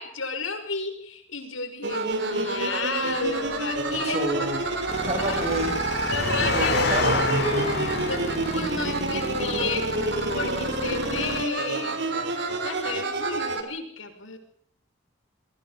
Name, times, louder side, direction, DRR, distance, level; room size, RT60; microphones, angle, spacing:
voice 1, 0.0-4.5 5.2-5.5 6.1-6.9 8.0-9.9 10.3-12.3 12.6-14.4, left 4 dB, 85° left, 6 dB, 5.9 m, -33 dB
sound 1, 1.8-13.6, right 2 dB, 60° right, 3.9 m, -28 dB
Engine, 3.2-8.8, left 3 dB, 55° left, 5.2 m, -30 dB
voice 2, 3.9-4.6 5.0-5.8 6.4-7.5, right 1 dB, 35° right, 5 dB, 7.4 m, -30 dB
sound 2, 4.9-11.5, left 1 dB, 30° left, 2.0 m, -35 dB
29.5 x 23.5 x 5.3 m, 0.62 s
head